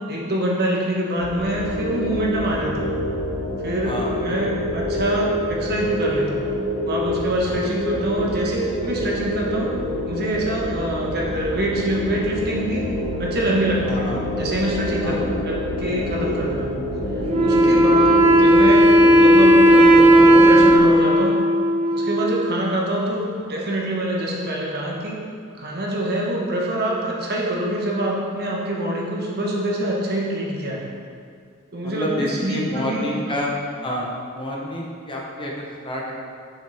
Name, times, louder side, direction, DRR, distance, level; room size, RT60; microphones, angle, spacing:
voice 1, 0.1-2.9 3.6-6.4 6.8-9.7 10.1-12.9 13.2-14.0 14.4-16.7 17.4-21.4 21.9-25.2 25.6-30.8 31.7-33.4, right 1 dB, 50° right, -3 dB, 1.2 m, -25 dB
sound 1, 1.2-20.8, left 1 dB, 45° left, 1.8 m, -26 dB
voice 2, 3.8-4.5 7.5-7.6 13.8-14.2 15.0-15.3 17.7-17.9 31.8-33.5 33.8-36.3, equal, 25° left, -2 dB, 0.9 m, -29 dB
Wind instrument woodwind instrument, 17.3-22.8, equal, 30° right, 0.5 m, -14 dB
7.2 x 6.2 x 3.5 m, 2.2 s
head